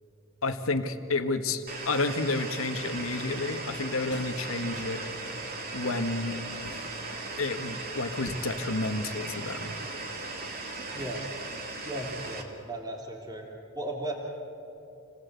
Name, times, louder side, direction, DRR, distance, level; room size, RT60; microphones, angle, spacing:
voice 1, 0.4-5.0 5.7-6.4 7.4-9.7, left 3 dB, 85° left, 8 dB, 1.6 m, -30 dB
sound 1, 1.7-12.4, right 3 dB, 50° right, 3.0 m, -38 dB
sound 2, 3.0-12.0, left 2 dB, 60° left, 1.4 m, -52 dB
voice 2, 10.9-11.2 11.8-13.4 13.8-14.1, right 1 dB, 20° right, -1 dB, 3.4 m, -36 dB
28.5 x 18.5 x 8.4 m, 2.9 s
head